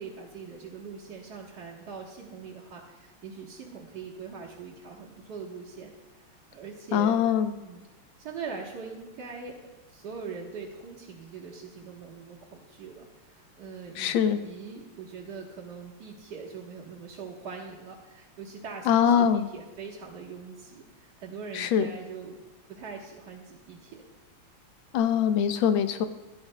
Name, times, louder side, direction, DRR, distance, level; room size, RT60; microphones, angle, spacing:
voice 1, 0.0-5.9 6.2-7.2 7.6-7.9 8.2-9.6 9.9-14.2 14.4-22.4 22.7-24.0, right 5 dB, 55° right, -6 dB, 1.8 m, -42 dB
voice 2, 6.9-7.5 14.0-14.4 18.9-19.5 21.5-21.9 24.9-26.1, left 8 dB, 75° left, 9 dB, 1.4 m, -23 dB
16.5 x 11.5 x 2.2 m, 1.1 s
omnidirectional pair, 2.3 m